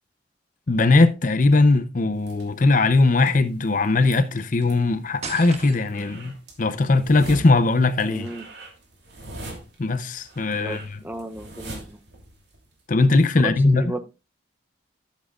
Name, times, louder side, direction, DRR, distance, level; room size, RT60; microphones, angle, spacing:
voice 1, 0.7-8.3 9.8-11.0 12.9-13.9, left 3 dB, 40° left, 0.6 m, -19 dB
sound 1, 2.1-12.8, right 2 dB, 55° right, 3.0 m, -43 dB
sound 2, 5.2-6.2, right 4 dB, 35° right, 1.3 m, -36 dB
voice 2, 8.1-8.4 10.6-12.0 13.4-14.0, right 1 dB, 10° right, 0.8 m, -34 dB
14.0 x 7.5 x 2.4 m
head